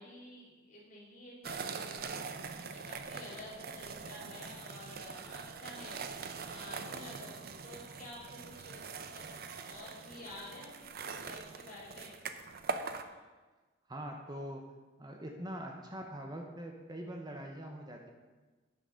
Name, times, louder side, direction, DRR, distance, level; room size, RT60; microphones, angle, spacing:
voice 1, 0.0-6.0 6.3-12.2 13.0-13.2, left 1 dB, 40° left, -5 dB, 2.9 m, -51 dB
sound 1, 1.4-13.0, right 5 dB, 50° right, 0.6 m, -43 dB
voice 2, 13.9-14.7 15.0-18.1, equal, 20° right, 2 dB, 0.8 m, -43 dB
9.1 x 6.2 x 6.3 m, 1.3 s
head